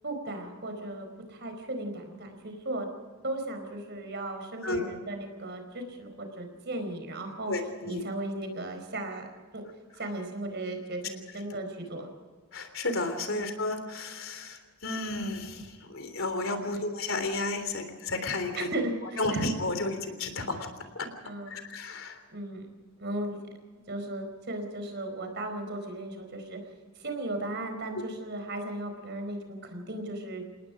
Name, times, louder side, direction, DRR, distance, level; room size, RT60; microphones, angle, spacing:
voice 1, 0.0-2.9 3.2-7.5 7.8-9.3 9.5-9.6 10.0-12.1 13.3-13.4 16.7-16.8 18.6-19.4 21.2-21.6 22.3-22.7 23.0-23.4 23.9-26.6 27.0-30.4, right 1 dB, 50° right, 5 dB, 4.5 m, -36 dB
voice 2, 7.5-8.0 12.5-18.7 19.2-20.7 20.9-21.1 21.5-22.2, left 2 dB, 65° left, 8 dB, 3.4 m, -32 dB
29.0 x 19.0 x 5.0 m, 1.4 s
head